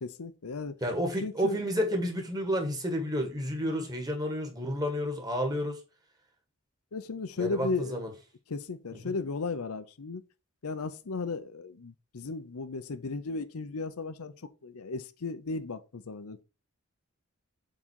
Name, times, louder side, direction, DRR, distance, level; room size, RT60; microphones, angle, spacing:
voice 1, 0.0-0.8 1.2-1.6 6.9-8.0 8.5-10.2 10.6-14.3 14.6-16.4, left 4 dB, 80° left, 0.7 m, -35 dB
voice 2, 0.8-5.8 7.4-8.1 8.9-9.1, equal, 15° right, 1.5 m, -31 dB
7.5 x 3.9 x 4.6 m
head